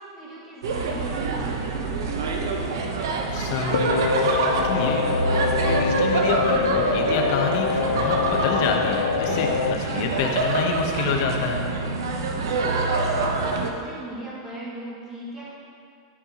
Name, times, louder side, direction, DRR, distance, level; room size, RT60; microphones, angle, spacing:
voice 1, 0.0-2.4 12.6-15.5, right 1 dB, 15° right, -7 dB, 1.8 m, -39 dB
sound 1, 0.6-13.7, right 3 dB, 90° right, 0.9 m, -26 dB
voice 2, 3.3-5.1 5.7-11.6, left 5 dB, 50° left, 2 dB, 0.9 m, -28 dB
sound 2, 3.7-9.7, left 7 dB, 85° left, 0.4 m, -25 dB
11.0 x 5.6 x 3.0 m, 2.3 s
supercardioid pair, 160°, 2 cm